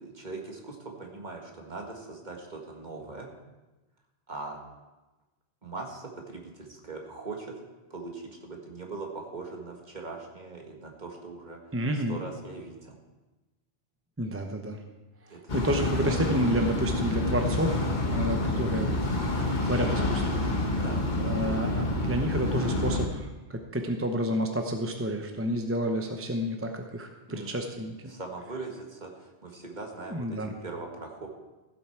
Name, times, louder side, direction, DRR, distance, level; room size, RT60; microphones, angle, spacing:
voice 1, 0.0-3.3 4.3-4.6 5.6-7.5 7.9-13.0 15.3-15.6 20.8-21.1 27.3-27.7 28.1-31.3, right 3 dB, 40° right, 1 dB, 1.8 m, -41 dB
voice 2, 11.7-12.2 14.2-14.8 15.3-19.0 19.6-20.8 21.2-28.1 30.1-30.5, equal, 15° right, 4 dB, 0.7 m, -30 dB
sound 1, 15.5-23.1, left 2 dB, 40° left, 1.4 m, -28 dB
15.5 x 7.9 x 4.5 m, 1.1 s
omnidirectional pair, 1.2 m